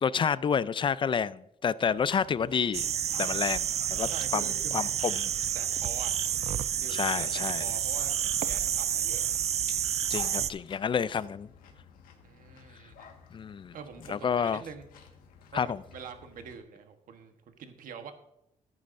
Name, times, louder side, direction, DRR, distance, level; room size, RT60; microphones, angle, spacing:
voice 1, 0.0-2.9 3.2-4.5 4.7-5.3 6.9-7.7 10.1-11.5 13.3-13.7 14.1-14.6 15.5-15.8, left 7 dB, 35° left, 18 dB, 0.4 m, -29 dB
sound 1, 1.9-16.6, left 7 dB, 85° left, 1.7 m, -52 dB
sound 2, 2.7-10.5, right 9 dB, 50° right, 0.4 m, -30 dB
voice 2, 4.1-5.0 5.5-6.1 6.7-9.2 12.2-13.1 13.7-14.8 15.5-18.1, right 6 dB, 70° right, 7 dB, 1.2 m, -45 dB
14.0 x 9.6 x 2.6 m, 0.80 s
cardioid pair, 95°, 14 cm